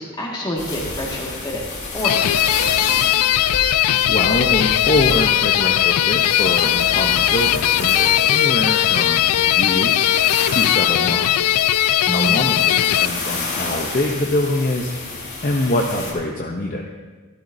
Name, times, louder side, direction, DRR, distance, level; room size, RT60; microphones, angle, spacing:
voice 1, 0.0-2.9 12.0-12.6, equal, 20° left, -2 dB, 1.8 m, -28 dB
sound 1, 0.6-16.1, left 3 dB, 55° left, 2.3 m, -30 dB
sound 2, 2.0-13.1, left 13 dB, 90° left, 0.3 m, -18 dB
voice 2, 4.1-11.4 12.1-15.1 15.4-16.9, left 1 dB, 40° left, 0 dB, 0.7 m, -24 dB
13.0 x 12.5 x 2.7 m, 1.3 s
head